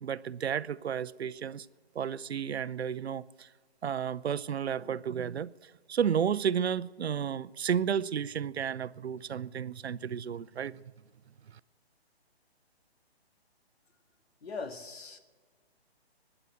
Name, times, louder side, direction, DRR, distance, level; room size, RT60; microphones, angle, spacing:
voice 1, 0.0-1.7 1.9-3.5 3.8-10.8 11.5-11.6, right 8 dB, 80° right, 0.6 m, -32 dB
voice 2, 14.4-15.2, left 4 dB, 70° left, 2.0 m, -40 dB
15.0 x 9.9 x 9.4 m
hypercardioid pair, 160°, 32 cm